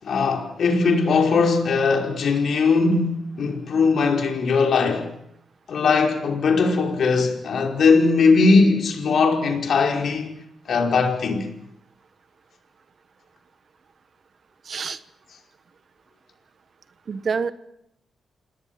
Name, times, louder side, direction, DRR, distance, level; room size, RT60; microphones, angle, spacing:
voice 1, 0.0-5.1 5.7-10.3 10.7-11.5, left 4 dB, 65° left, 5.1 m, -20 dB
voice 2, 14.6-15.0 17.1-17.5, right 5 dB, 50° right, 1.4 m, -26 dB
28.0 x 19.0 x 7.6 m
cardioid pair, 85°, 0 cm